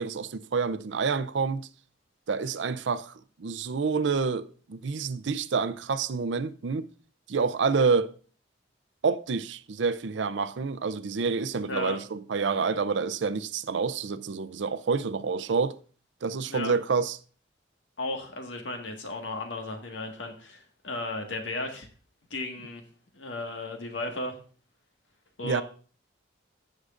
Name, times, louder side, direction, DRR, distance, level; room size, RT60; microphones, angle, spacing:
voice 1, 0.0-1.7 2.3-3.1 3.4-6.9 7.3-8.1 9.0-15.8 16.2-17.2 25.4-25.6, right 5 dB, 75° right, 0.5 m, -28 dB
voice 2, 11.6-12.0 16.5-16.7 18.0-21.9 22.3-22.8 23.1-24.4 25.4-25.6, left 2 dB, 90° left, 1.7 m, -35 dB
16.0 x 6.4 x 2.5 m
head